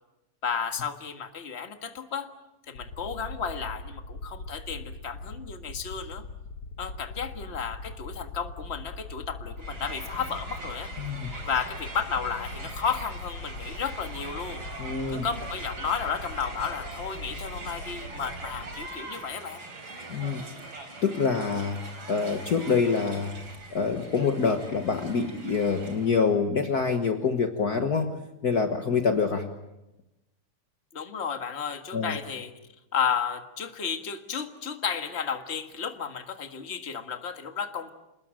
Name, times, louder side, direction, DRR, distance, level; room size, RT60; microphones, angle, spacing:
voice 1, 0.4-2.3 2.7-6.2 6.8-10.9 11.5-14.7 15.1-19.6 30.9-32.5 32.9-37.9, left 6 dB, 30° left, 6 dB, 1.7 m, -33 dB
sound 1, 2.8-18.9, left 3 dB, 80° left, 2.9 m, -41 dB
Crowd, 9.6-26.3, right 2 dB, 65° right, 4.7 m, -42 dB
voice 2, 11.0-11.3 14.8-15.2 20.1-20.4 21.0-21.8 22.1-23.3 23.7-28.1 28.4-29.5 31.9-32.2, left 5 dB, 50° left, 5 dB, 1.7 m, -26 dB
28.5 x 20.5 x 8.9 m, 0.98 s
omnidirectional pair, 2.4 m